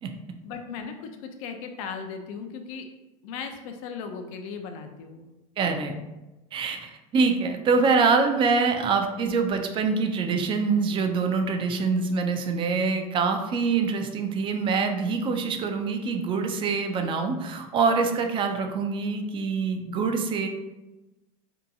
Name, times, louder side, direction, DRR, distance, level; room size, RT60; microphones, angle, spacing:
voice 1, 0.4-2.9 3.2-5.3, left 5 dB, 70° left, 5 dB, 0.5 m, -37 dB
voice 2, 5.6-6.0 6.5-20.5, right 4 dB, 30° right, 5 dB, 0.3 m, -25 dB
2.7 x 2.2 x 2.6 m, 1.1 s
supercardioid pair, 115°, 18 cm